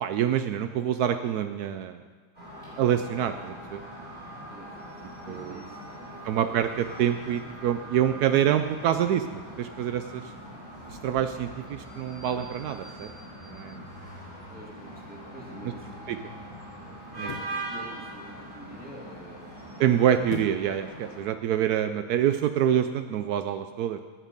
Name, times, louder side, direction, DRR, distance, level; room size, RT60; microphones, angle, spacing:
voice 1, 0.0-2.0 2.8-3.8 5.3-5.6 6.2-10.2 10.9-13.1 13.4-13.8 16.1-16.2 17.2-17.3 19.8-24.0, right 10 dB, 75° right, 9 dB, 1.1 m, -26 dB
sound 1, 2.3-21.2, right 1 dB, 25° right, 4.9 m, -42 dB
voice 2, 4.5-6.2 14.5-16.2 17.1-19.8, equal, 5° right, -3 dB, 2.2 m, -47 dB
sound 2, 17.2-17.6 20.3-20.7 21.2-21.3, left 8 dB, 75° left, 1.1 m, -38 dB
18.5 x 7.4 x 5.3 m, 1.4 s
omnidirectional pair, 1.7 m